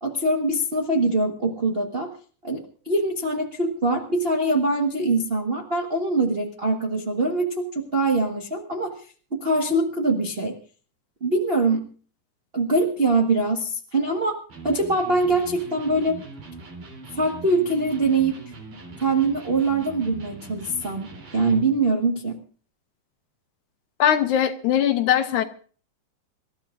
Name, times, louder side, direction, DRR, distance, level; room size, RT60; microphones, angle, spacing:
voice 1, 0.0-2.1 2.4-8.9 9.4-10.6 11.2-11.8 12.5-14.4 14.6-16.2 17.1-18.4 19.0-22.4, right 2 dB, 45° right, 0 dB, 0.7 m, -23 dB
Electric guitar, 14.5-21.8, right 3 dB, 70° right, 5.0 m, -41 dB
voice 2, 24.0-25.4, left 9 dB, 70° left, 8 dB, 2.2 m, -20 dB
27.0 x 13.5 x 2.6 m, 0.41 s
omnidirectional pair, 3.8 m